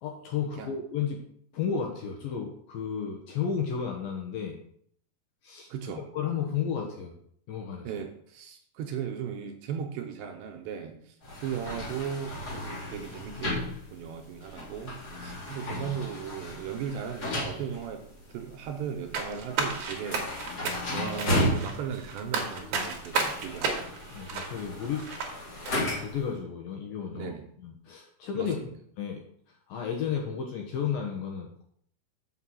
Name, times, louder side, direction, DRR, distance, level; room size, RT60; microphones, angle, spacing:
voice 1, 0.0-1.2 1.5-4.6 5.4-5.7 6.0-7.1 7.5-7.9 24.1-25.1 25.7-27.3 27.6-28.6 29.0-29.2 29.5-31.6, left 7 dB, 75° left, 1 dB, 2.2 m, -33 dB
voice 2, 5.7-6.0 7.8-11.2 11.4-20.3 20.6-23.9 27.1-27.5 28.3-28.7, right 7 dB, 75° right, 5 dB, 2.8 m, -37 dB
sound 1, 11.2-26.3, left 1 dB, 40° left, 1.4 m, -35 dB
sound 2, 19.1-25.3 25.6-25.7, right 4 dB, 60° right, 2.1 m, -32 dB
6.6 x 6.4 x 7.5 m, 0.65 s
omnidirectional pair, 5.6 m